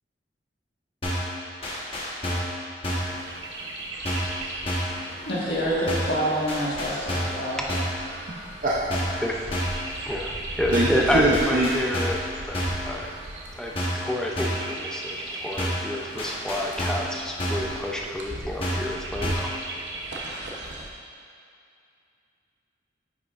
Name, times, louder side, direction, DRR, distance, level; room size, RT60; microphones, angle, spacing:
sound 1, 1.0-1.3 1.6-2.6 2.8-3.2 4.1-4.4 4.7-5.0 5.9-6.2 6.5-7.4 7.7-8.0 8.9-9.2 9.5-9.8 10.7-11.0 11.3-12.3 12.5-12.9 13.8-14.1 14.4-14.7 15.6-15.9 16.2-17.1 17.4-17.7 18.6-18.9 19.2-19.5, equal, 30° left, 1.2 m, -28 dB
Chirp tweet, 2.9-20.9, right 1 dB, 85° right, 0.9 m, -38 dB
voice 1, 5.2-7.6, equal, 70° left, -7 dB, 1.6 m, -27 dB
voice 2, 8.3-9.2 10.7-11.7, right 1 dB, 45° right, -6 dB, 0.6 m, -24 dB
voice 3, 10.0-12.2 12.4-12.6 12.8-13.1 13.5-19.5, equal, 5° left, -1 dB, 0.5 m, -29 dB
9.3 x 5.8 x 2.5 m, 2.4 s
head